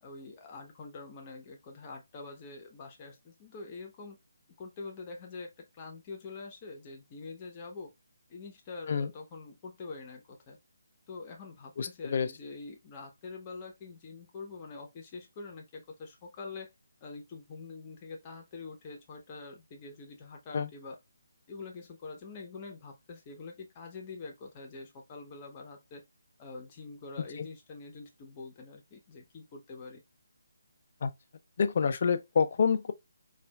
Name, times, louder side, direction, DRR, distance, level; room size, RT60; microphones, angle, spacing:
voice 1, 0.0-4.2 4.6-7.9 8.3-10.6 11.1-16.7 17.0-21.0 21.5-26.0 26.4-30.0, left 4 dB, 25° left, 0.8 m, -45 dB
voice 2, 11.8-12.3 20.5-20.7 27.4-27.5 31.0-31.1 31.6-32.9, left 6 dB, 50° left, 0.4 m, -27 dB
4.2 x 2.4 x 2.3 m
figure-of-eight pair, 150°, 0 cm